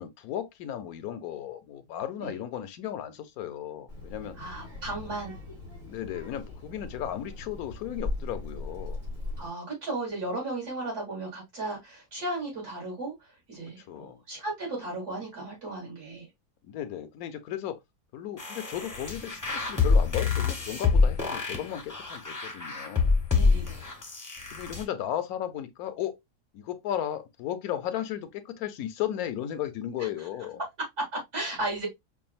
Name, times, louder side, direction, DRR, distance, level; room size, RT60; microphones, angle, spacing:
voice 1, 0.0-4.4 5.9-9.0 13.9-14.2 16.7-17.8 18.1-23.1 24.5-26.2 26.5-30.6, left 11 dB, 70° left, 1.0 m, -35 dB
Child speech kid speaking, 3.9-9.5, left 2 dB, 55° right, 3.1 m, -39 dB
voice 2, 4.4-5.3 9.4-13.1 13.5-16.3 23.3-23.9 30.0-30.1 31.1-31.9, right 2 dB, 70° right, 3.7 m, -35 dB
sound 1, 18.4-24.8, left 4 dB, 15° left, 0.7 m, -26 dB
5.5 x 2.5 x 2.4 m
omnidirectional pair, 1.7 m